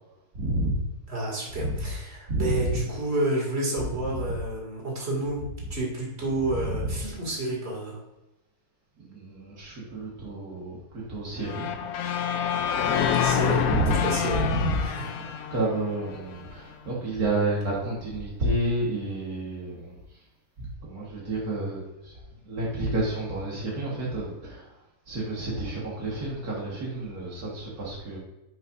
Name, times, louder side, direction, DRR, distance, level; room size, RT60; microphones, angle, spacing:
voice 1, 0.3-0.9 1.5-2.9 3.9-4.4 5.6-5.7 6.2-7.1 9.0-11.7 11.9-12.4 13.3-14.8 15.2-20.2 20.6-24.7 25.1-28.2, right 1 dB, 75° right, -4 dB, 2.1 m, -30 dB
voice 2, 1.1-8.0 13.2-13.6 13.9-14.4 14.8-15.1, right 2 dB, 45° right, -3 dB, 2.6 m, -30 dB
sound 1, 11.4-16.5, left 8 dB, 75° left, 1.1 m, -27 dB
10.0 x 5.7 x 2.6 m, 0.97 s
omnidirectional pair, 1.6 m